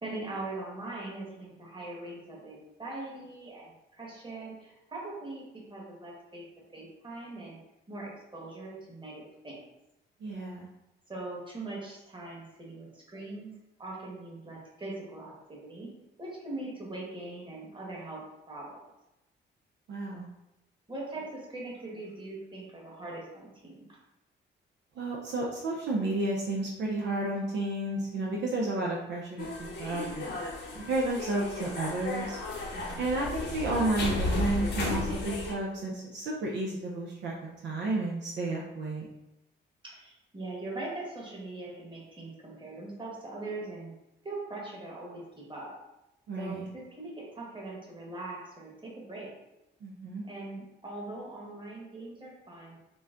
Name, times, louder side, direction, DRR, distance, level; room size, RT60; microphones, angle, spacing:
voice 1, 0.0-6.4 6.7-7.6 7.9-9.6 11.1-13.5 13.8-15.9 16.2-18.8 20.9-24.0 32.7-33.1 39.8-43.9 44.2-45.7 46.4-49.3 50.2-52.8, right 2 dB, 25° right, -3 dB, 1.4 m, -41 dB
voice 2, 10.2-10.7 19.9-20.3 25.0-30.4 30.7-32.4 33.0-37.3 37.6-39.0 46.3-46.7 49.8-50.2, right 2 dB, 65° right, -3 dB, 0.7 m, -32 dB
sound 1, 29.4-35.5, left 2 dB, 55° left, 0.9 m, -34 dB
3.9 x 2.2 x 3.7 m, 0.92 s
cardioid pair, 90°, 20 cm